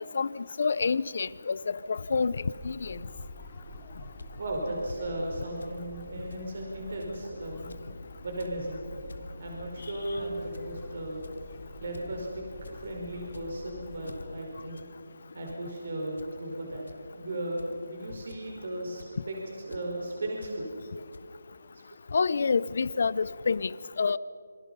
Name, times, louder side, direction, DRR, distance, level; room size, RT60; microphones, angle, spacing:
voice 1, 0.1-3.0 22.1-24.2, left 5 dB, 45° left, 19 dB, 0.7 m, -28 dB
sound 1, 2.5-14.0, left 1 dB, 15° left, 3.0 m, -47 dB
sound 2, 4.2-4.3 4.9-5.0 5.6-5.8 6.0-6.1 6.3-6.5 7.0-7.2 7.6-7.9 8.2-8.6 8.9-9.3 9.8-10.1 10.5-10.8 11.2-11.5 11.9-12.1 12.4-12.8 13.3-13.7 14.0-14.3 14.8-14.9 15.2-15.6 16.2-16.3 16.9-17.0 17.6-17.8 18.3-18.6 19.0-19.1 19.7-19.8 20.4-20.6 21.1-21.2, left 3 dB, 80° left, 2.0 m, -49 dB
voice 2, 4.4-7.7 8.2-8.9 9.4-11.3 11.8-14.8 15.3-19.4 19.6-20.7 21.7-21.8, right 1 dB, 50° right, 0 dB, 5.1 m, -36 dB
27.5 x 26.0 x 5.6 m, 2.2 s
hypercardioid pair, 170°, 0 cm